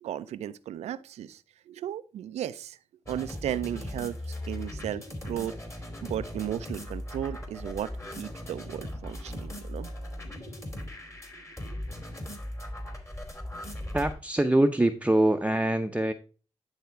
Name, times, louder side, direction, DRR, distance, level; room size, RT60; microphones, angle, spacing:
voice 1, 0.0-2.8 3.1-5.6 6.0-9.9 11.4-11.8, right 11 dB, 90° right, 0.4 m, -35 dB
sound 1, 3.1-14.1, left 1 dB, 25° left, 2.5 m, -38 dB
voice 2, 13.9-16.1, right 1 dB, 10° right, 0.7 m, -24 dB
10.5 x 3.6 x 4.6 m
cardioid pair, 50°, 11 cm